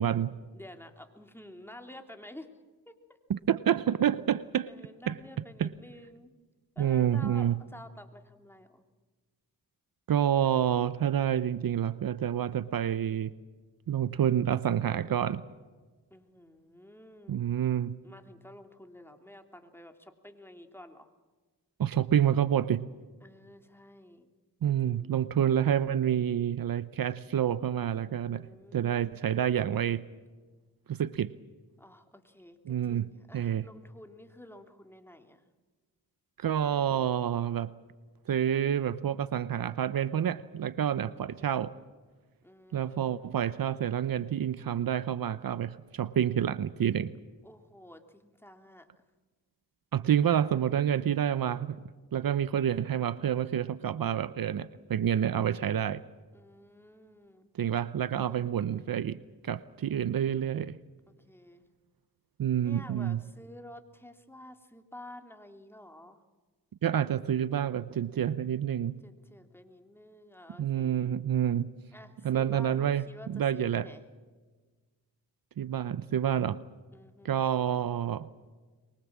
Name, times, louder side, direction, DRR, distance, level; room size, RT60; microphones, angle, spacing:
voice 1, 0.0-0.4 3.3-4.7 5.1-5.2 5.6-5.7 6.8-7.6 10.1-13.3 13.9-15.4 17.3-18.0 21.8-22.9 24.6-28.5 28.7-30.0 30.9-31.3 32.7-33.6 36.4-37.7 38.3-41.7 42.7-47.1 49.9-51.8 52.1-56.0 57.6-59.2 59.4-60.8 62.4-63.2 66.8-69.0 70.6-71.7 72.2-73.9 75.6-76.6 77.2-78.3, right 9 dB, 65° right, 16 dB, 0.8 m, -28 dB
voice 2, 0.5-2.5 2.8-2.9 4.6-6.3 6.7-8.8 10.4-10.5 16.1-17.5 18.0-21.1 23.2-24.3 24.6-25.2 28.3-29.0 31.8-35.4 41.0-41.5 42.4-43.3 47.4-48.9 56.3-57.5 58.3-58.9 61.1-61.6 62.6-66.2 69.0-71.2 71.9-74.0 76.9-77.4, left 1 dB, 5° left, 5 dB, 3.1 m, -51 dB
23.5 x 23.0 x 7.5 m, 1.3 s
cardioid pair, 55°, 38 cm